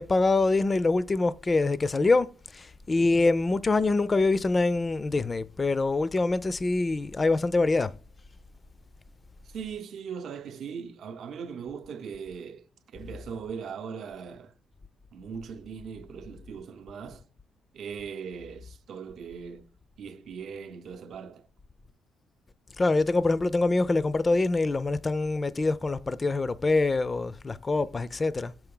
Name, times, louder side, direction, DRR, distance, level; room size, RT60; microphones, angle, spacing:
voice 1, 0.0-7.9 22.8-28.5, left 3 dB, 25° left, 0.4 m, -25 dB
voice 2, 9.5-14.5 15.1-17.3 17.7-19.7 20.0-21.5, right 6 dB, 65° right, 0.6 m, -39 dB
6.7 x 4.5 x 3.8 m
cardioid pair, 90°, 0 cm